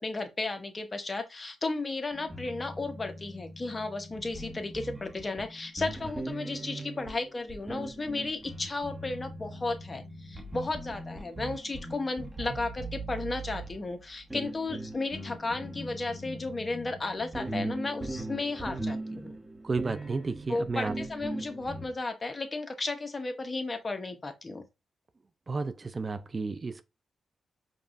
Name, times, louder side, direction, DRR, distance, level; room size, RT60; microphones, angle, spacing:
voice 1, 0.0-19.4 20.5-24.6, left 3 dB, 35° left, 0.9 m, -34 dB
sound 1, 2.1-21.9, right 2 dB, 20° right, 1.1 m, -40 dB
voice 2, 19.6-20.9 25.5-26.8, right 4 dB, 40° right, 0.4 m, -32 dB
5.2 x 2.4 x 2.5 m
cardioid pair, 60°, 0 cm